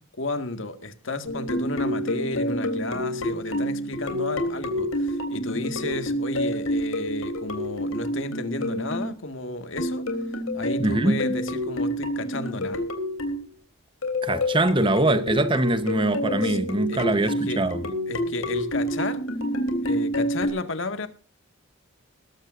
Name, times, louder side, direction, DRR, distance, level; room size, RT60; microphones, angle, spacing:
voice 1, 0.2-10.1 10.5-12.8 16.4-16.6 16.9-17.7 18.1-19.2 19.8-21.1, left 2 dB, 65° left, 1.9 m, -32 dB
sound 1, 1.3-9.1 9.8-13.4 14.0-20.5, left 1 dB, 85° left, 3.5 m, -28 dB
voice 2, 10.8-11.2 14.2-17.8, right 2 dB, 25° right, 1.0 m, -23 dB
20.5 x 14.5 x 2.6 m
head